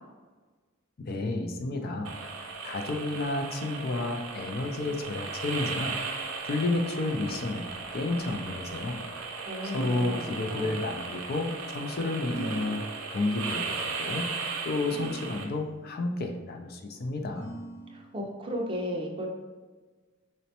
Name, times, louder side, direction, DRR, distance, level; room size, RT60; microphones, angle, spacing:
voice 1, 1.0-6.0 6.4-7.7 7.9-9.0 9.6-14.3 14.6-17.5, left 2 dB, 45° left, 4 dB, 0.4 m, -31 dB
sound 1, 2.0-15.4, right 4 dB, 75° right, 0.5 m, -37 dB
voice 2, 9.5-10.8 17.9-19.3, equal, 25° right, 0 dB, 0.5 m, -35 dB
sound 2, 9.6-10.8 12.2-13.4 14.9-15.9 17.3-18.3, right 2 dB, 70° left, 0.8 m, -42 dB
5.0 x 2.1 x 2.8 m, 1.3 s
head